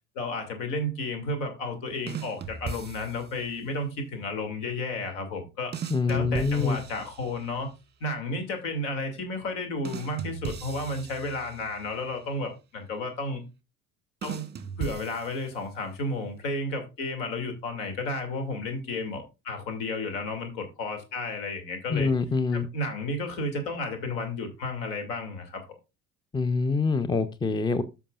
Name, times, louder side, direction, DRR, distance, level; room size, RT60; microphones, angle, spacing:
voice 1, 0.1-5.7 6.1-7.7 8.0-13.4 14.2-14.4 14.8-22.1 22.5-25.6, left 2 dB, 70° left, 2.8 m, -32 dB
sound 1, 2.1-3.5 5.7-7.7 9.8-12.0 14.2-15.8, right 6 dB, 25° right, 1.2 m, -39 dB
voice 2, 5.9-6.8 21.9-22.7 26.3-27.8, left 4 dB, 10° left, 0.6 m, -25 dB
13.5 x 5.7 x 2.5 m
hypercardioid pair, 65°, 42 cm